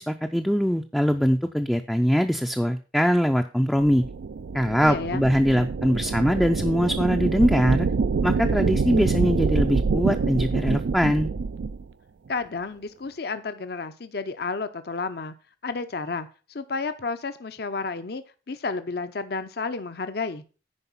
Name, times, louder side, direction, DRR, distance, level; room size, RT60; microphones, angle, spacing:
voice 1, 0.0-4.0 4.5-7.9 8.2-11.3, equal, ahead, 4 dB, 0.4 m, -22 dB
sound 1, 3.8-11.8, right 4 dB, 75° right, 0.4 m, -26 dB
voice 2, 4.8-5.3 12.3-15.3 15.6-20.4, left 4 dB, 55° left, 10 dB, 0.6 m, -31 dB
9.8 x 5.0 x 5.5 m, 0.35 s
head